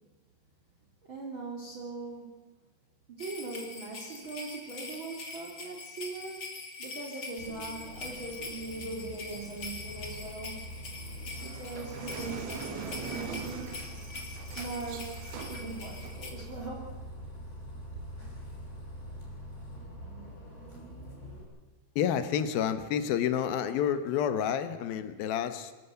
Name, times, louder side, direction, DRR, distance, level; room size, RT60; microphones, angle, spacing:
voice 1, 1.1-2.4 3.1-6.5 6.8-10.7 11.4-13.9 14.5-15.1 15.5-16.9, right 3 dB, 35° right, -1 dB, 2.7 m, -40 dB
sound 1, 3.2-16.3, left 3 dB, 30° left, 2.6 m, -44 dB
Bus, 7.4-21.4, equal, 15° left, 4.8 m, -44 dB
sound 2, 11.4-16.7, right 7 dB, 85° right, 4.1 m, -43 dB
voice 2, 22.0-25.7, left 9 dB, 70° left, 11 dB, 2.6 m, -29 dB
25.0 x 14.0 x 8.0 m, 1.2 s
omnidirectional pair, 5.0 m